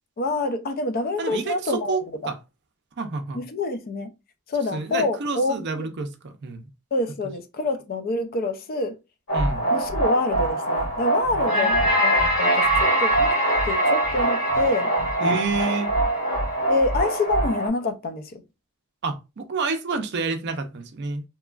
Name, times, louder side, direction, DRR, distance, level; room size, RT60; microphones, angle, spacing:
voice 1, 0.2-2.0 3.3-4.1 4.5-5.9 6.9-9.0 9.7-13.3 13.7-14.9 16.7-18.4, left 2 dB, 45° left, 0.4 m, -26 dB
voice 2, 1.2-2.4 3.0-3.4 4.7-6.7 9.3-9.6 11.5-11.9 15.2-15.9 19.0-21.2, right 4 dB, 50° right, 0.5 m, -29 dB
sound 1, 9.3-17.7, right 1 dB, 90° left, 1.7 m, -22 dB
2.9 x 2.3 x 2.3 m
head